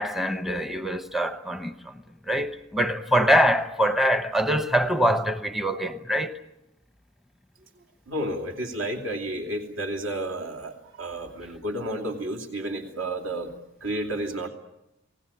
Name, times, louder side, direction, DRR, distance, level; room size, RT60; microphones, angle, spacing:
voice 1, 0.0-1.9 2.3-6.4, equal, ahead, 0.8 m, -24 dB
voice 2, 8.1-13.5 13.8-14.5, right 1 dB, 65° right, 2.9 m, -31 dB
28.0 x 19.0 x 8.8 m
head